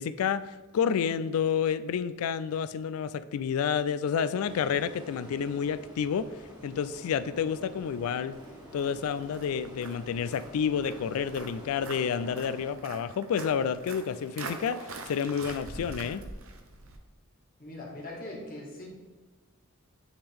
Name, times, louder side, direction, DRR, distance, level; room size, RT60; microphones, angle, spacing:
voice 1, 0.0-6.3 6.6-8.4 8.7-16.2, left 7 dB, 85° left, 13 dB, 0.3 m, -29 dB
sound 1, 4.4-12.7, right 1 dB, 20° right, 1.4 m, -48 dB
Walk footsteps, 8.3-17.0, right 3 dB, 70° right, 0.8 m, -44 dB
voice 2, 17.6-18.8, left 1 dB, 45° left, -3 dB, 1.7 m, -41 dB
9.3 x 3.7 x 3.4 m, 1.3 s
head